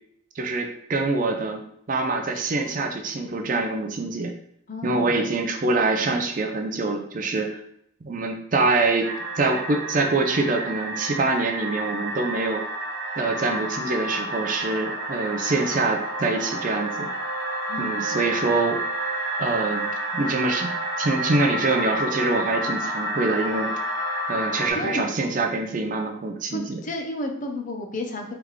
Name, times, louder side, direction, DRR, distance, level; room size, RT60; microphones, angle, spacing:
voice 1, 0.4-1.6 1.9-4.3 4.8-7.6 8.0-9.1 9.4-12.6 13.2-17.1 17.8-18.8 19.4-20.7 21.0-23.7 24.3-26.8, right 3 dB, 40° right, 4 dB, 0.5 m, -25 dB
voice 2, 4.7-5.2 17.7-18.2 24.7-25.1 26.5-28.3, left 2 dB, 40° left, 3 dB, 0.6 m, -32 dB
sound 1, 9.0-24.7, right 1 dB, 75° right, 0.8 m, -30 dB
3.7 x 3.4 x 3.1 m, 0.72 s
head